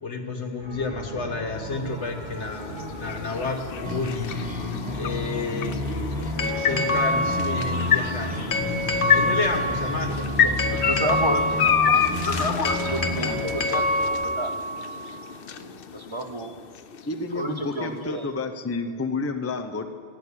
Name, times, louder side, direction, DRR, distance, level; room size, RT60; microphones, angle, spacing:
voice 1, 0.0-4.3 4.9-15.4, left 2 dB, 80° left, 5 dB, 1.7 m, -28 dB
sound 1, 0.6-14.1, equal, 45° right, 3.2 m, -38 dB
sound 2, 1.5-17.7, left 8 dB, 60° left, 0.8 m, -29 dB
sound 3, 3.9-13.5, left 2 dB, 5° right, 2.0 m, -32 dB
voice 2, 10.9-11.5 11.9-12.0 12.8-13.8 14.4-14.5 15.5-16.6 17.3-18.3, right 1 dB, 30° right, 5 dB, 0.8 m, -31 dB
voice 3, 17.1-19.9, left 3 dB, 15° left, 7 dB, 0.6 m, -30 dB
16.0 x 9.0 x 8.6 m, 2.4 s
omnidirectional pair, 1.2 m